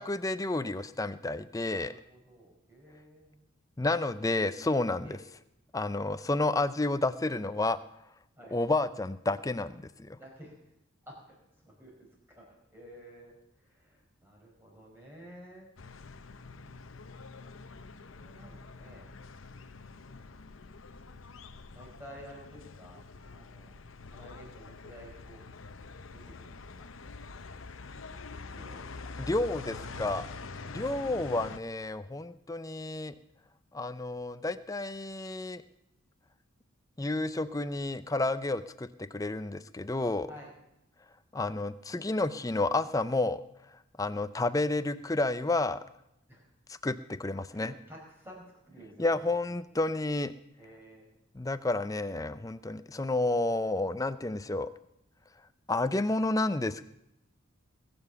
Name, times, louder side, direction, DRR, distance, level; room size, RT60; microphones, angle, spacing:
voice 1, 0.0-1.9 3.8-5.2 5.7-7.8 8.5-10.2 29.2-30.3 30.7-33.1 33.7-35.6 37.0-40.3 41.3-43.4 44.0-45.8 46.7-47.7 49.0-50.3 51.3-54.7 55.7-56.8, left 2 dB, 15° left, 13 dB, 0.5 m, -30 dB
voice 2, 1.7-3.5 5.0-5.2 8.4-8.6 10.1-10.6 11.1-11.3 11.6-11.9 12.3-15.7 16.4-16.9 18.2-19.1 19.9-20.3 21.2-21.3 21.7-23.0 23.3-23.7 24.0-25.5 26.1-26.9 28.5-29.1 29.7-30.0 30.5-30.9 40.3-40.5 46.3-46.5 47.5-49.5 50.6-51.1, equal, 10° right, -2 dB, 4.6 m, -52 dB
sound 1, 15.8-31.6, left 4 dB, 70° left, 0.8 m, -46 dB
21.0 x 7.1 x 6.9 m, 0.83 s
head